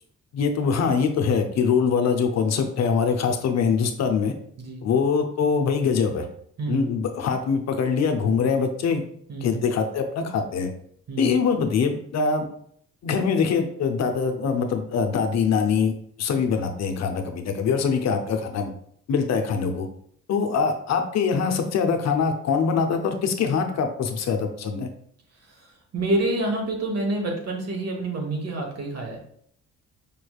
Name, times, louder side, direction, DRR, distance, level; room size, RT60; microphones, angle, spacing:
voice 1, 0.3-4.3 4.8-6.3 6.7-9.0 9.4-10.7 11.2-12.5 13.0-15.9 16.2-18.7 19.1-19.9 20.3-24.9, left 6 dB, 60° left, 6 dB, 0.6 m, -23 dB
voice 2, 6.6-6.9 9.3-9.6 11.1-11.4 25.5-25.7 25.9-29.2, right 2 dB, 55° right, 1 dB, 1.3 m, -27 dB
5.1 x 3.1 x 2.3 m, 0.65 s
cardioid pair, 90°, 30 cm